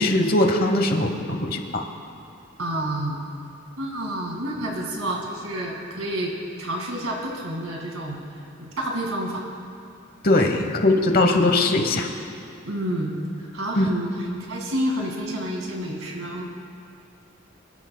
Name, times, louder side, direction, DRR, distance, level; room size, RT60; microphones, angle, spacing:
voice 1, 0.0-1.8 10.2-12.1 13.8-13.9, left 2 dB, 45° left, 4 dB, 1.0 m, -20 dB
voice 2, 2.6-3.2 3.8-6.3 6.6-8.2 8.6-9.5 10.4-10.6 11.1-11.3 12.7-16.4, right 1 dB, 90° right, 0 dB, 2.1 m, -29 dB
25.0 x 11.0 x 2.2 m, 2.5 s
head